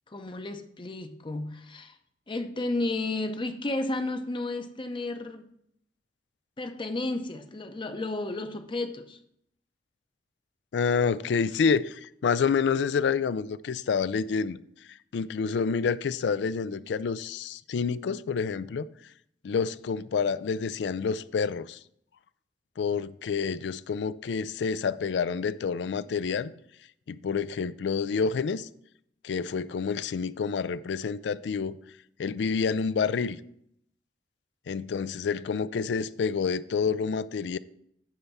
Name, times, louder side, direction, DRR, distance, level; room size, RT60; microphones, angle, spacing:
voice 1, 0.1-2.0 2.3-5.4 6.6-9.2, left 2 dB, 30° left, 0.6 m, -32 dB
voice 2, 10.7-14.6 14.9-18.9 19.4-21.8 22.8-26.5 27.1-28.7 29.2-31.8 32.2-33.4 34.7-37.6, left 5 dB, 80° left, 0.4 m, -28 dB
9.4 x 3.5 x 6.8 m
head